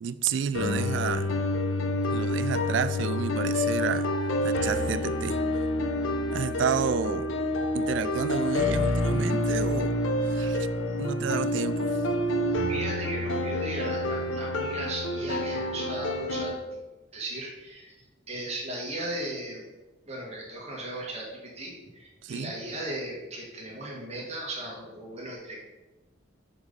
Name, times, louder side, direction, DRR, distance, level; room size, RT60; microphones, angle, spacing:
voice 1, 0.0-1.3 2.1-4.1 4.4-5.4 6.3-7.3 7.7-9.9 10.2-10.7 11.0-12.0 22.2-22.5, right 7 dB, 65° right, 0.3 m, -30 dB
sound 1, 0.5-16.5, left 1 dB, 80° left, 0.7 m, -28 dB
voice 2, 12.5-16.8 17.1-19.7 20.0-25.6, right 1 dB, 35° right, 1.7 m, -37 dB
6.0 x 4.0 x 5.2 m
head